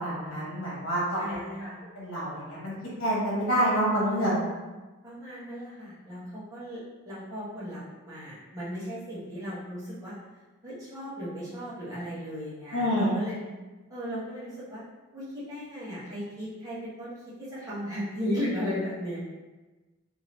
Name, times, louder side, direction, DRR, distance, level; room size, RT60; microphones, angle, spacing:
voice 1, 0.0-1.7 1.9-2.7 3.0-4.4 12.7-13.2, equal, 60° left, -7 dB, 1.3 m, -27 dB
voice 2, 1.2-1.8 5.0-6.8 7.0-10.1 10.6-13.4 13.9-14.8 15.1-17.1 17.4-19.2, equal, 15° right, -11 dB, 1.2 m, -36 dB
3.6 x 2.8 x 2.9 m, 1.2 s
head